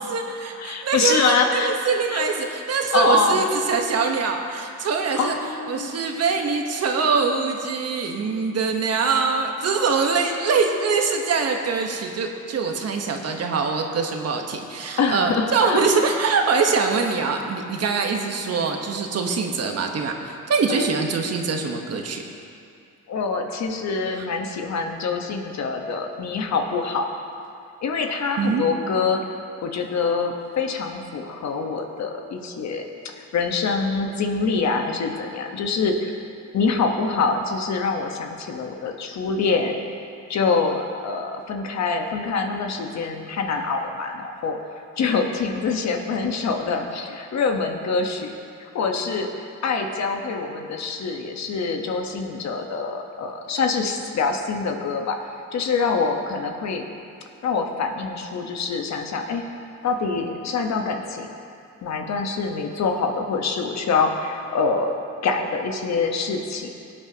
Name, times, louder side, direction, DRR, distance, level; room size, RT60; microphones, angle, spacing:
voice 1, 0.0-5.4 5.7-22.2 28.4-28.6, right 5 dB, 55° right, 3 dB, 1.3 m, -23 dB
voice 2, 0.6-1.8 2.1-2.3 2.9-3.7 5.2-5.9 15.0-15.9 20.7-20.9 23.1-27.1 27.8-29.2 29.6-32.8 33.2-36.1 36.5-39.8 40.3-44.6 45.0-49.3 49.6-55.2 55.5-56.8 57.4-59.4 59.8-61.3 61.8-66.7, left 4 dB, 60° left, 3 dB, 1.2 m, -25 dB
17.5 x 8.8 x 2.9 m, 2.4 s
cardioid pair, 90°, 30 cm